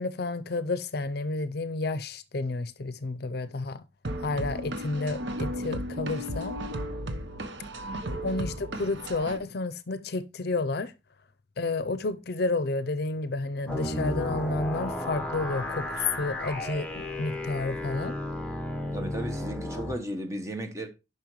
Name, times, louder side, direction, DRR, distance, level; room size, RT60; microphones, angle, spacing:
voice 1, 0.0-3.8 4.2-6.6 8.2-10.9 11.6-18.2, left 3 dB, 60° left, 0.6 m, -31 dB
sound 1, 4.0-9.4, equal, 75° right, 0.9 m, -34 dB
voice 2, 7.8-8.3 18.9-20.9, right 1 dB, 15° right, 1.1 m, -35 dB
sound 2, 13.7-19.9, left 1 dB, 5° left, 1.4 m, -33 dB
10.5 x 5.7 x 3.1 m
head